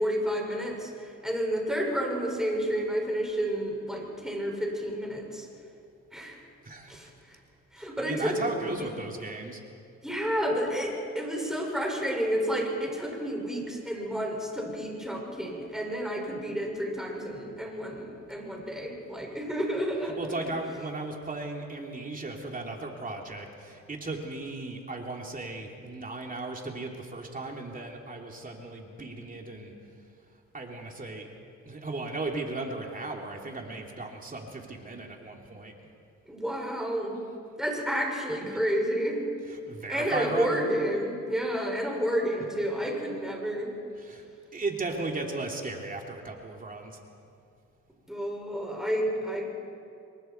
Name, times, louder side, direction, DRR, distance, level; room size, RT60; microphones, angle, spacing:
voice 1, 0.0-5.5 6.1-6.4 6.9-7.1 7.7-8.8 10.0-20.3 36.3-37.2 37.6-39.2 39.9-43.7 48.1-49.5, equal, ahead, -1 dB, 6.3 m, -30 dB
voice 2, 6.6-7.1 7.8-9.6 20.2-29.7 30.5-31.3 31.6-35.7 39.7-40.6 44.0-44.3 44.5-47.0, right 2 dB, 30° right, 1 dB, 3.1 m, -36 dB
27.0 x 22.5 x 4.6 m, 2.5 s
cardioid pair, 90°, 30 cm